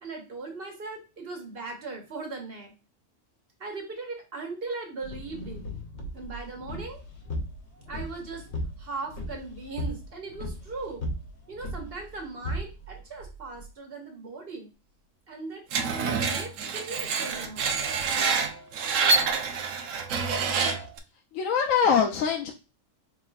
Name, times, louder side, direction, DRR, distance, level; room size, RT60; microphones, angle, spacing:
voice 1, 0.0-2.7 3.6-5.6 6.1-7.0 7.9-8.5 8.8-11.0 11.5-14.7 15.3-15.7 16.0-19.7, right 3 dB, 50° right, 2 dB, 1.3 m, -39 dB
sound 1, 5.0-13.7, equal, 60° left, 1.2 m, -37 dB
Screech, 15.7-21.0, right 5 dB, 80° right, 1.0 m, -27 dB
voice 2, 21.3-22.5, left 6 dB, 85° left, 3 dB, 1.0 m, -23 dB
4.8 x 3.3 x 2.3 m, 0.30 s
omnidirectional pair, 1.3 m